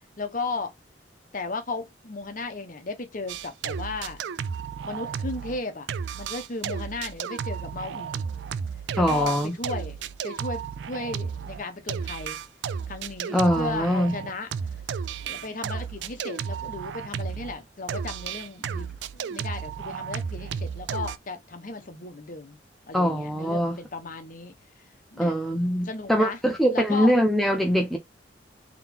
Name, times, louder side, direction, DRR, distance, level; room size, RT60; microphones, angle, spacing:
voice 1, 0.2-0.7 1.3-4.2 4.8-5.9 6.1-8.2 8.9-12.4 12.9-14.5 15.2-22.6 22.9-24.5 25.1-25.3 25.8-26.4 26.7-27.1, left 3 dB, 50° left, 0.9 m, -35 dB
sound 1, 3.3-5.6 5.9-17.6 17.9-21.2, right 7 dB, 75° right, 0.3 m, -33 dB
voice 2, 9.0-9.5 13.3-14.1 22.9-23.8 25.2-28.0, equal, ahead, 0.4 m, -23 dB
3.7 x 2.9 x 3.3 m
head